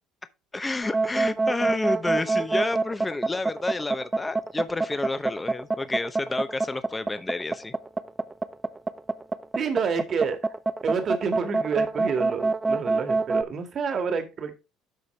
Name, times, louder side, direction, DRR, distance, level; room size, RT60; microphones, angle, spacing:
voice 1, 0.5-7.7, left 3 dB, 20° left, 0.7 m, -30 dB
sound 1, 0.8-13.4, right 3 dB, 15° right, 0.7 m, -25 dB
voice 2, 9.6-10.4 10.8-14.5, right 5 dB, 45° right, 1.8 m, -28 dB
12.0 x 4.1 x 3.3 m
supercardioid pair, 75°, 0 cm